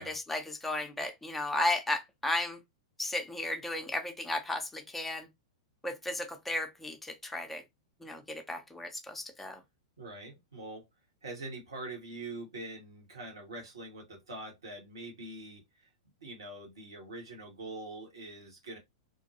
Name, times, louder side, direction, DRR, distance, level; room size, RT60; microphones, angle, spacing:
voice 1, 0.0-2.6 3.0-5.3 5.8-7.6 8.0-9.6, left 2 dB, 5° left, 0.5 m, -34 dB
voice 2, 10.0-10.8 11.2-15.9 16.2-18.8, right 2 dB, 70° right, 1.2 m, -44 dB
2.6 x 2.2 x 2.7 m
figure-of-eight pair, 100°, 3 cm